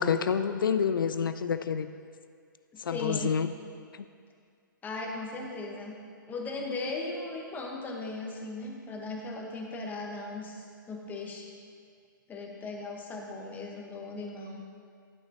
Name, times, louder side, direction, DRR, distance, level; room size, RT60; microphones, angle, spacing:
voice 1, 0.0-1.9 2.8-3.5, left 7 dB, 75° left, 11 dB, 0.4 m, -28 dB
voice 2, 2.7-3.3 4.8-6.0 6.3-11.5 12.3-14.6, left 2 dB, 15° left, 0 dB, 1.0 m, -37 dB
11.0 x 7.1 x 2.8 m, 2.2 s
hypercardioid pair, 120°, 11 cm